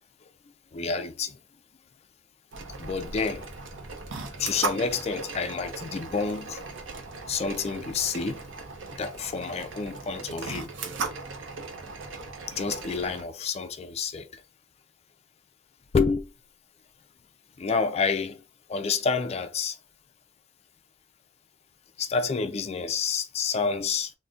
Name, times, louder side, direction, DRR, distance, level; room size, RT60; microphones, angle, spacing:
voice 1, 0.7-1.4 2.8-3.5 4.4-6.6 7.3-8.4 9.0-10.7 12.5-14.4 15.9-16.3 17.6-18.4 18.7-19.8 22.0-24.1, left 5 dB, 35° left, 0.3 m, -29 dB
sound 1, 2.5-13.2, right 3 dB, 80° right, 0.6 m, -37 dB
3.8 x 2.1 x 2.4 m
head